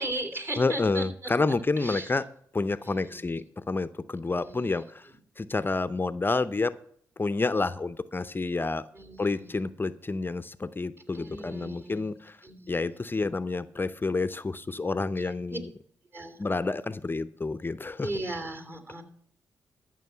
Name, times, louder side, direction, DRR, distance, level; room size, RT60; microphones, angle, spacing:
voice 1, 0.0-1.0 1.8-2.2 2.8-3.3 4.4-4.8 8.9-9.6 11.1-12.0 12.4-13.1 15.5-15.6 16.1-16.4 18.0-19.0, right 1 dB, 30° right, 7 dB, 3.0 m, -37 dB
voice 2, 0.6-2.2 2.5-5.1 5.4-6.7 7.2-8.8 9.2-12.4 12.7-15.7 16.4-18.1, left 3 dB, 25° left, 14 dB, 0.6 m, -29 dB
13.5 x 6.3 x 5.7 m, 0.64 s
supercardioid pair, 50°, 8 cm